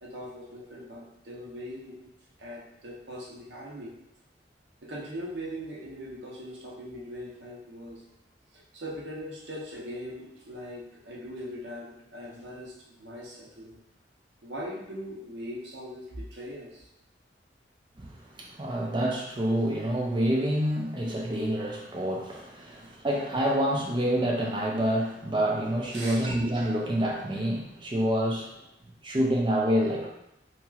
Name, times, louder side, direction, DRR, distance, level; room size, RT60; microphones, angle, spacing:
voice 1, 0.0-2.1 2.4-3.9 4.8-8.0 8.7-12.7 13.0-13.8 14.4-16.9 25.9-26.2, equal, 75° right, -5 dB, 0.8 m, -40 dB
voice 2, 18.0-28.5 29.0-30.1, equal, 25° right, -1 dB, 0.5 m, -27 dB
2.9 x 2.9 x 2.4 m, 0.84 s
head